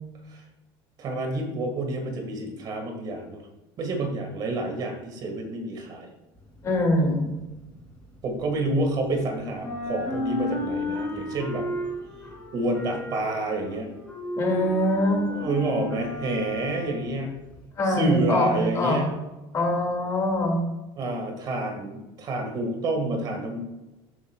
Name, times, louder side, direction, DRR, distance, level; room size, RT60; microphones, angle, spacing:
voice 1, 1.0-3.5 3.8-6.1 8.2-11.7 12.5-13.9 15.3-17.3 17.9-19.1 21.0-23.6, right 2 dB, 35° right, 3 dB, 1.9 m, -28 dB
sound 1, 6.4-9.2 9.5-17.7, left 1 dB, 10° left, 2.9 m, -33 dB
voice 2, 6.6-7.3 14.4-15.2 17.8-19.0 19.5-20.6, left 1 dB, 30° left, 1 dB, 2.4 m, -23 dB
15.0 x 8.1 x 2.4 m, 1.0 s
cardioid pair, 165°, 11 cm